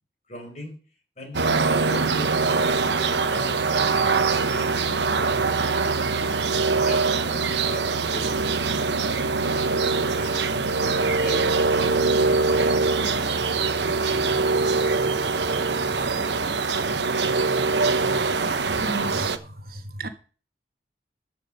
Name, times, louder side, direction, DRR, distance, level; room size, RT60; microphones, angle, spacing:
voice 1, 0.3-0.7 1.2-6.3 6.8-13.1, left 1 dB, 40° left, 4.9 m, -41 dB
sound 1, 1.3-19.4, right 4 dB, 80° right, 1.1 m, -23 dB
voice 2, 18.8-20.1, right 2 dB, 55° right, 1.4 m, -33 dB
13.5 x 6.3 x 6.8 m
head